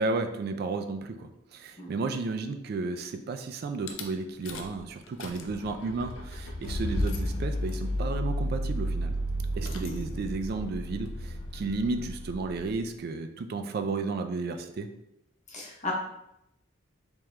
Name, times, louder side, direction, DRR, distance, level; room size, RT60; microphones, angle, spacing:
voice 1, 0.0-9.1 9.5-14.9, right 3 dB, 50° right, 7 dB, 0.3 m, -33 dB
Rattle / Car / Engine starting, 3.9-4.0 4.5-4.8 5.1-12.8, equal, 70° left, 0.5 m, -33 dB
voice 2, 9.5-10.0 15.5-15.9, left 3 dB, 35° left, -2 dB, 0.9 m, -37 dB
3.5 x 2.9 x 3.2 m, 0.82 s
head